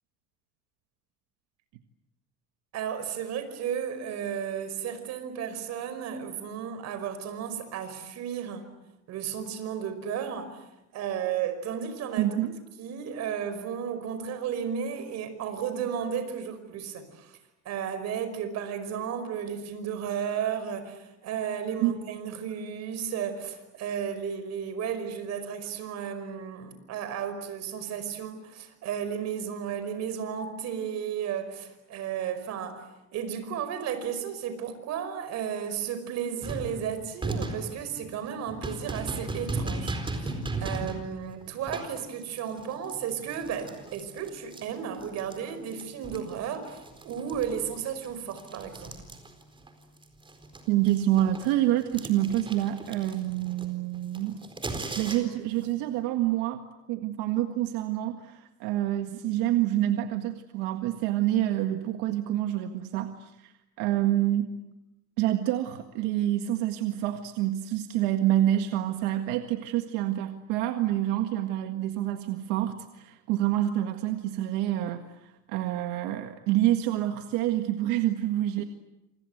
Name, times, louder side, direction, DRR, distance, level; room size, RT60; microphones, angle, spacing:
voice 1, 2.7-8.7 9.1-10.6 10.9-12.4 12.8-17.4 17.7-32.8 33.1-48.9, right 8 dB, 60° right, 10 dB, 5.4 m, -34 dB
voice 2, 12.2-12.6 21.8-21.9 50.7-54.4 55.0-56.6 56.9-63.5 63.8-64.6 65.2-78.6, right 13 dB, 90° right, 6 dB, 1.8 m, -27 dB
sound 1, 36.4-45.4 45.7-49.7 50.0-55.5, right 2 dB, 15° right, 4.3 m, -37 dB
27.5 x 27.0 x 8.0 m, 0.91 s
cardioid pair, 135°, 30 cm